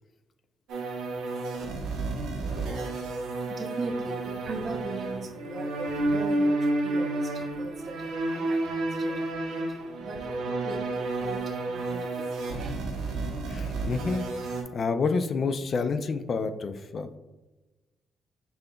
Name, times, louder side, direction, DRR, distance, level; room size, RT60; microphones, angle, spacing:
sound 1, 0.7-14.6, right 2 dB, 90° right, 0.9 m, -31 dB
voice 1, 2.5-13.1, right 3 dB, 50° right, 6 dB, 0.6 m, -40 dB
voice 2, 13.5-17.2, left 4 dB, 50° left, 10 dB, 0.4 m, -29 dB
5.5 x 3.8 x 2.2 m, 1.1 s
cardioid pair, 90°, 0 cm